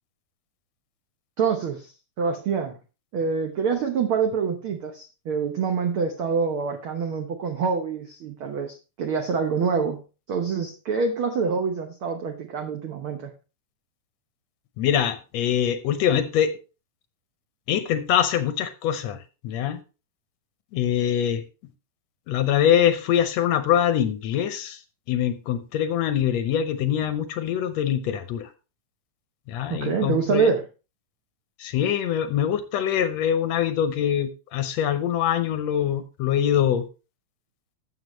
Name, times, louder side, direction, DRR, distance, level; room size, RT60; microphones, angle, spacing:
voice 1, 1.4-2.8 3.1-10.0 10.3-13.3 29.7-30.6, right 5 dB, 75° right, 5 dB, 1.2 m, -26 dB
voice 2, 14.8-16.5 17.7-19.2 19.4-19.8 20.7-21.4 22.3-24.8 25.1-28.4 29.5-30.5 31.6-36.8, left 9 dB, 75° left, 11 dB, 1.7 m, -23 dB
13.0 x 7.8 x 3.1 m, 0.32 s
omnidirectional pair, 3.7 m